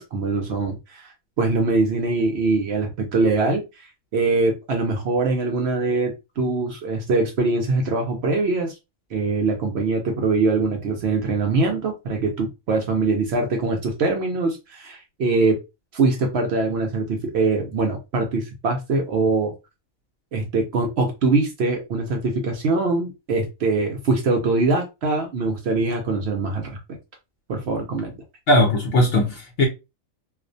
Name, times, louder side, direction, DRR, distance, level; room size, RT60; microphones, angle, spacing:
voice 1, 0.0-8.7 9.1-15.6 15.9-19.5 20.3-27.0 27.5-28.1, right 3 dB, 65° right, 0.7 m, -23 dB
voice 2, 28.5-29.6, left 1 dB, 65° left, 0.6 m, -18 dB
2.4 x 2.1 x 2.5 m
omnidirectional pair, 1.4 m